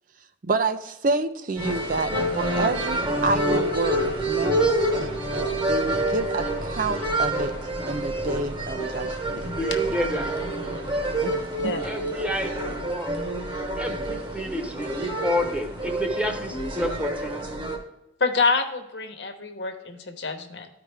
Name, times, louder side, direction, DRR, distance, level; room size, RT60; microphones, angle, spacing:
voice 1, 0.4-4.7 5.0-5.1 5.7-7.5 7.9-9.2 9.4-9.5 11.1-11.7, right 3 dB, 50° right, 10 dB, 0.5 m, -28 dB
sound 1, 1.6-17.8, right 1 dB, 30° right, 1.2 m, -27 dB
voice 2, 9.4-10.3 11.8-13.2 13.8-14.9 15.2-17.3, left 1 dB, 5° right, 3 dB, 1.0 m, -29 dB
voice 3, 18.2-20.7, left 4 dB, 80° left, 5 dB, 1.0 m, -26 dB
13.0 x 4.9 x 3.4 m, 0.92 s
head